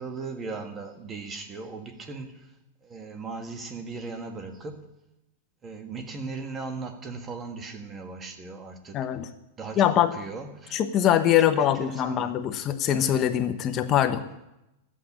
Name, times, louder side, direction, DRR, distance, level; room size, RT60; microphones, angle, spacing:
voice 1, 0.0-2.5 2.8-4.9 5.6-9.0 9.6-10.8 11.4-12.3, right 4 dB, 20° right, 6 dB, 1.6 m, -38 dB
voice 2, 8.9-9.3 9.8-10.1 10.7-14.2, left 10 dB, 30° left, 8 dB, 1.0 m, -23 dB
13.0 x 8.5 x 8.7 m, 0.91 s
supercardioid pair, 155°, 0 cm